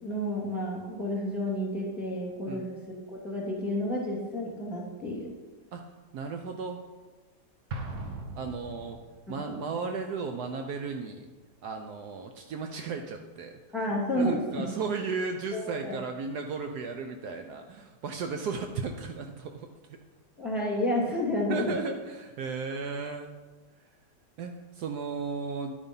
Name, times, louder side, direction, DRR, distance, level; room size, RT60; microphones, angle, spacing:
voice 1, 0.0-5.3 9.3-9.6 13.7-14.7 15.5-15.9 20.4-21.7, left 1 dB, ahead, -5 dB, 2.4 m, -31 dB
voice 2, 6.1-6.8 8.4-9.0 9.3-11.3 11.6-13.6 14.2-19.7 21.5-23.3 24.4-25.8, right 4 dB, 75° right, 5 dB, 1.1 m, -35 dB
Explosion, 7.7-9.3, right 2 dB, 50° right, 1.2 m, -39 dB
10.5 x 5.2 x 5.4 m, 1.3 s
omnidirectional pair, 1.8 m